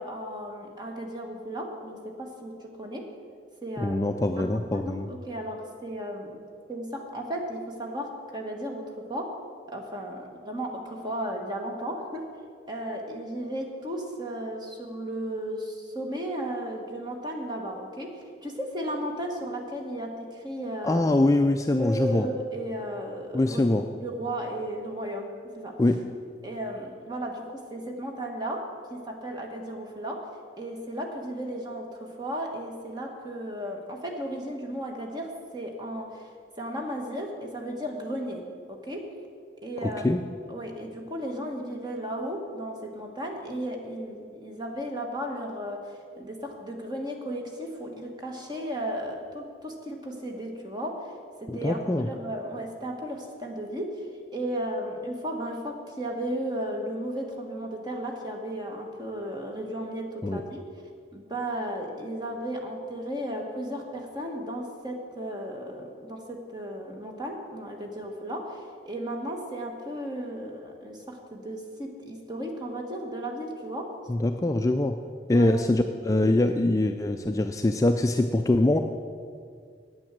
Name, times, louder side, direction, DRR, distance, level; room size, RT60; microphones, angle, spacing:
voice 1, 0.0-3.1 3.6-4.0 4.4-6.4 6.7-9.3 9.7-12.2 12.7-21.0 21.7-23.6 24.0-25.8 26.4-30.3 30.6-36.3 36.6-39.1 39.6-40.1 40.5-51.1 51.4-54.0 54.3-60.6 61.1-73.9 75.3-75.6, right 1 dB, 25° right, 2 dB, 1.4 m, -35 dB
voice 2, 3.8-5.1 20.8-22.3 23.3-23.8 25.8-26.0 39.8-40.2 51.5-52.1 60.2-60.4 74.1-75.0 75.3-78.8, left 1 dB, 20° left, 6 dB, 0.3 m, -23 dB
9.0 x 8.7 x 7.4 m, 2.1 s
head